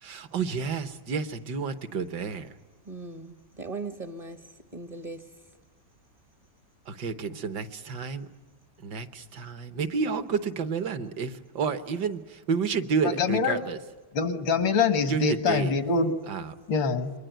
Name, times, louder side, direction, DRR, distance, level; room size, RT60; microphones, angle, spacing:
voice 1, 0.0-2.5 6.9-8.3 8.8-13.8 15.1-15.7 16.3-16.5, right 5 dB, 65° right, 1.7 m, -30 dB
voice 2, 2.9-5.3, right 3 dB, 30° right, 0.7 m, -39 dB
voice 3, 13.0-13.6 14.1-16.1 16.7-17.1, left 5 dB, 85° left, 2.1 m, -25 dB
28.0 x 22.5 x 9.1 m
omnidirectional pair, 2.1 m